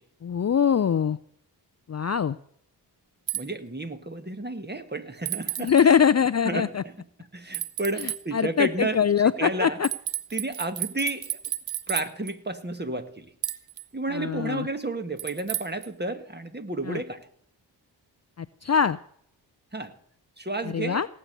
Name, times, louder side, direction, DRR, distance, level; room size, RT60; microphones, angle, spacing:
voice 1, 0.2-1.2 1.9-2.4 5.6-6.8 8.0-9.9 14.1-14.7 16.8-17.0 18.4-19.0 20.6-21.1, left 7 dB, 35° left, 15 dB, 0.5 m, -23 dB
voice 2, 3.3-5.9 6.4-6.9 7.3-9.0 9.4-9.8 10.3-11.4 11.9-13.3 13.9-17.3 19.7-19.9 20.4-21.0, right 2 dB, 20° right, 9 dB, 1.8 m, -31 dB
sound 1, 3.3-3.4 5.3-5.8 7.5-8.2 9.8-12.3 13.4-13.9 15.2-15.9, right 11 dB, 70° right, 1.1 m, -32 dB
18.0 x 7.7 x 6.8 m, 0.64 s
cardioid pair, 45°, 46 cm